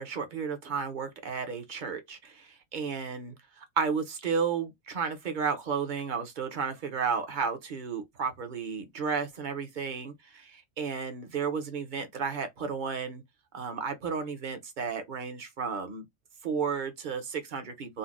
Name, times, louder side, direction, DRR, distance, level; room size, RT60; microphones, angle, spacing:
voice 1, 0.0-13.2 13.5-16.0 16.4-18.0, right 6 dB, 50° right, 0.7 m, -33 dB
3.9 x 2.1 x 2.4 m
omnidirectional pair, 1.4 m